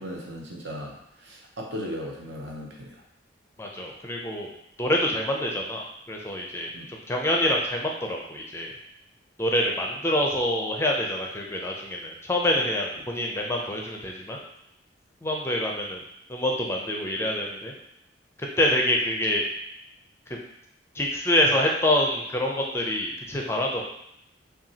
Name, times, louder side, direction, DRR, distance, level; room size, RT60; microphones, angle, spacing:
voice 1, 0.0-2.9 6.7-6.9, equal, 70° right, 0 dB, 0.8 m, -37 dB
voice 2, 3.6-4.5 4.8-8.7 9.4-14.4 15.2-16.0 16.3-17.7 18.6-19.4 20.3-20.4 21.0-23.8, left 1 dB, 15° left, 0 dB, 0.4 m, -26 dB
5.7 x 2.3 x 2.8 m, 0.79 s
head